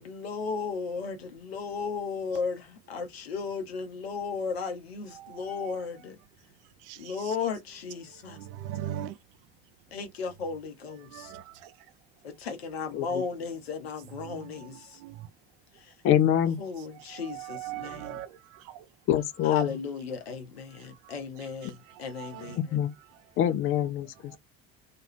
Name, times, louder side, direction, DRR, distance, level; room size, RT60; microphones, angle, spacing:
voice 1, 0.0-6.2 7.0-8.4 9.9-11.3 12.2-15.0 15.7-15.9 16.6-18.2 19.4-22.8, left 5 dB, 75° left, 0.8 m, -35 dB
voice 2, 5.2-5.8 6.9-7.2 8.3-9.2 11.1-11.7 14.2-15.3 17.1-18.8 21.6-21.7 22.1-22.6 24.3-24.4, right 12 dB, 60° right, 0.5 m, -40 dB
voice 3, 16.0-16.6 19.1-19.7 22.6-22.9 23.4-24.4, left 10 dB, 45° left, 0.5 m, -25 dB
2.5 x 2.2 x 3.1 m
figure-of-eight pair, 55°, 31 cm